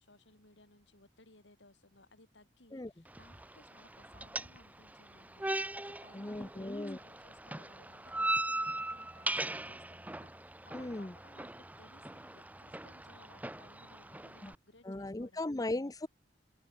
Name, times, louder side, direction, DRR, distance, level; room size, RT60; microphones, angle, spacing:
voice 1, 0.0-5.5 5.9-15.7, left 2 dB, 70° left, 5.4 m, -62 dB
sound 1, 3.1-14.5, right 2 dB, 10° right, 2.2 m, -40 dB
voice 2, 6.1-7.0 10.7-11.1 14.4-14.5 14.9-16.1, left 2 dB, 20° left, 0.7 m, -37 dB
head